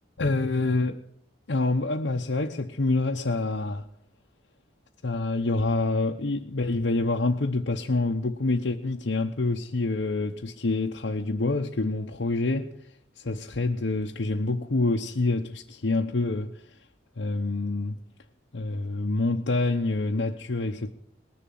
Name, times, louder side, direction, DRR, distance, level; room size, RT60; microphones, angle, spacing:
voice 1, 0.2-1.0 1.5-3.8 5.0-12.7 13.2-16.5 17.2-18.0 18.5-20.9, left 2 dB, 75° left, 0.9 m, -27 dB
20.0 x 7.0 x 9.2 m
head